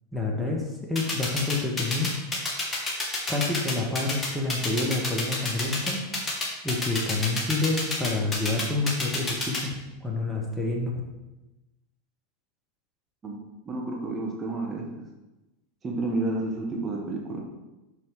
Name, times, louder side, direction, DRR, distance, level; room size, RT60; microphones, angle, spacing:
voice 1, 0.1-2.1 3.3-6.0 6.6-11.0, left 3 dB, ahead, -2 dB, 1.9 m, -28 dB
sound 1, 1.0-9.6, left 3 dB, 20° left, 2.4 m, -28 dB
voice 2, 13.6-15.1 15.8-17.4, right 2 dB, 25° right, -1 dB, 1.7 m, -30 dB
6.8 x 6.6 x 5.0 m, 1.0 s
figure-of-eight pair, 85°, 0 cm